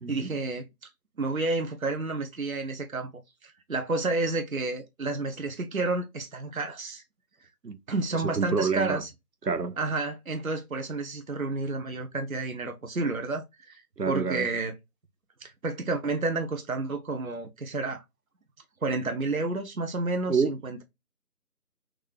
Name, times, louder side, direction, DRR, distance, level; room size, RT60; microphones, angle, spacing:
voice 1, 0.1-0.9 1.2-3.1 3.4-7.0 7.9-9.1 9.8-14.7 15.4-18.0 18.8-20.8, right 3 dB, 60° right, 0.9 m, -30 dB
voice 2, 8.2-9.0 9.4-9.8 14.0-14.5 20.3-20.5, right 5 dB, 85° right, 0.9 m, -27 dB
6.3 x 2.3 x 3.3 m
figure-of-eight pair, 165°, 47 cm